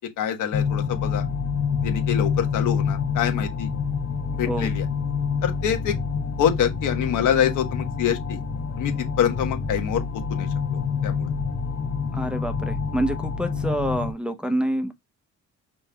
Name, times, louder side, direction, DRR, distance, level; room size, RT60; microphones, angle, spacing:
voice 1, 0.2-1.2 1.8-3.7 4.3-4.8 5.4-6.0 6.4-8.4 8.8-10.0 10.3-11.3, left 9 dB, 80° left, 1.3 m, -25 dB
sound 1, 0.5-14.1, left 6 dB, 60° left, 1.1 m, -27 dB
voice 2, 12.1-14.9, right 1 dB, 5° right, 0.8 m, -27 dB
5.2 x 4.2 x 2.3 m
cardioid pair, 90°, 30 cm